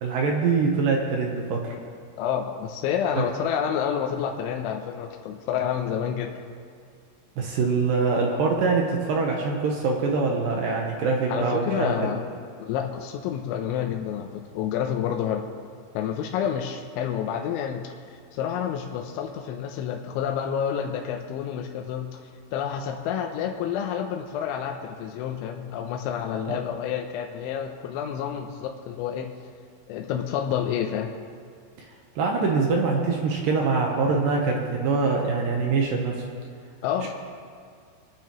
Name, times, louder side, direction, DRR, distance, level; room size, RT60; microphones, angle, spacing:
voice 1, 0.0-1.8 3.2-3.3 7.4-12.1 32.2-36.3 37.0-37.1, right 4 dB, 75° right, 0 dB, 2.0 m, -24 dB
voice 2, 2.2-6.5 11.3-12.2 12.6-15.5 15.9-22.1 22.5-29.3 29.9-31.1 36.8-37.1, left 8 dB, 85° left, 2 dB, 3.1 m, -29 dB
25.0 x 8.8 x 3.1 m, 2.2 s
omnidirectional pair, 5.4 m